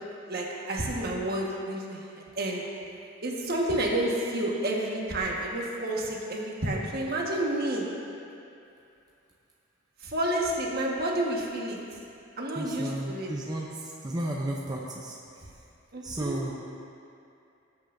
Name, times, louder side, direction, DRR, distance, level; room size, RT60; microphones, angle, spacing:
voice 1, 0.3-2.0 2.4-2.6 3.2-7.9 10.0-11.8 12.4-13.3 15.9-16.4, right 1 dB, 50° right, -2 dB, 1.5 m, -30 dB
voice 2, 12.5-15.5 16.0-16.5, right 1 dB, 20° right, -3 dB, 0.6 m, -34 dB
18.5 x 8.5 x 2.6 m, 2.6 s
head